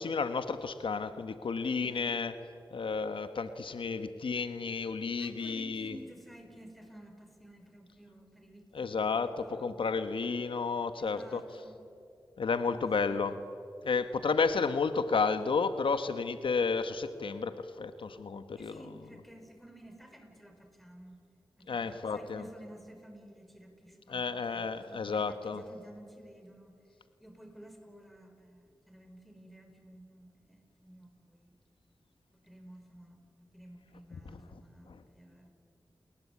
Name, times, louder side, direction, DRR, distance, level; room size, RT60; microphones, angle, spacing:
voice 1, 0.0-2.3 2.7-5.9 8.7-11.4 12.4-13.3 13.8-18.8 21.7-22.4 24.1-25.6 34.9-35.0, left 5 dB, 90° left, 10 dB, 1.2 m, -32 dB
voice 2, 1.6-2.2 5.2-9.9 11.0-11.8 12.7-13.2 18.6-21.2 21.6-26.8 27.2-31.5 32.3-35.5, right 1 dB, ahead, 4 dB, 5.4 m, -53 dB
29.0 x 21.0 x 8.6 m, 2.6 s
cardioid pair, 55°, 9 cm